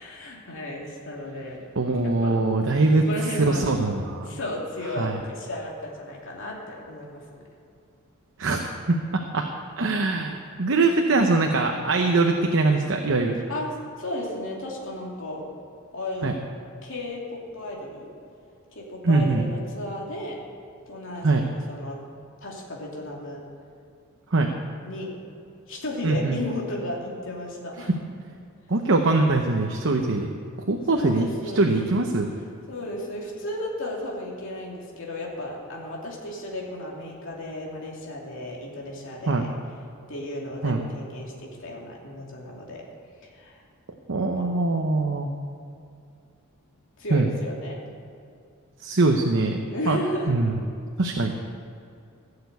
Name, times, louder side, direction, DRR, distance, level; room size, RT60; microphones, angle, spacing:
voice 1, 0.0-1.6 2.0-2.4 3.0-3.6 4.2-7.4 13.5-13.7 14.0-15.4 15.9-16.3 16.8-18.1 18.7-20.4 20.9-22.0 22.4-23.4 24.8-25.1 25.7-27.9 30.9-31.7 32.7-39.5 40.1-42.8 43.2-43.6 44.3-44.5 47.0-47.8 49.7-50.3, left 1 dB, 65° left, -2 dB, 2.8 m, -34 dB
voice 2, 1.8-3.0 3.4-4.3 5.0-5.2 8.4-8.6 8.9-9.0 9.3-9.5 9.8-13.4 16.2-16.3 19.0-19.4 21.2-21.5 24.3-24.5 26.0-26.4 28.7-30.3 30.7-31.3 31.5-32.3 39.3-39.5 40.6-40.8 44.1-45.3 47.1-47.3 48.8-49.6 49.9-50.0 50.3-50.5 51.0-51.3, right 3 dB, 60° right, 3 dB, 0.9 m, -22 dB
16.0 x 6.9 x 8.2 m, 2.5 s
head